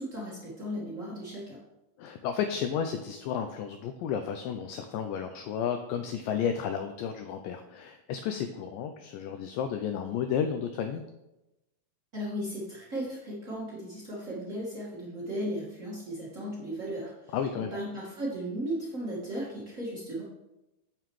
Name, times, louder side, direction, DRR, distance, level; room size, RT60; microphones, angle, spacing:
voice 1, 0.0-1.6 12.1-20.2, equal, 65° right, -6 dB, 0.7 m, -36 dB
voice 2, 2.0-11.0 17.3-17.7, left 8 dB, 90° left, 7 dB, 1.9 m, -32 dB
9.1 x 6.8 x 3.1 m, 0.95 s
omnidirectional pair, 4.5 m